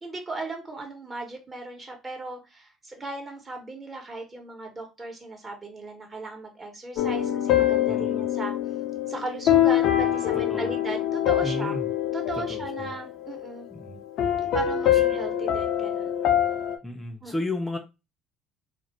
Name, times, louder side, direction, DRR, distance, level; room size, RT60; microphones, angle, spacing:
voice 1, 0.0-8.5 9.1-11.8 12.1-13.7 14.5-16.1 17.2-17.5, right 2 dB, 30° right, 3 dB, 1.1 m, -37 dB
sound 1, 7.0-13.6 14.2-16.8, left 11 dB, 65° left, 0.5 m, -24 dB
voice 2, 7.9-8.2 10.5-10.7 11.4-11.9 12.5-12.9 13.7-14.0 16.8-17.8, left 1 dB, 10° left, 3 dB, 0.5 m, -33 dB
2.4 x 2.1 x 3.1 m, 0.26 s
hypercardioid pair, 65°, 0 cm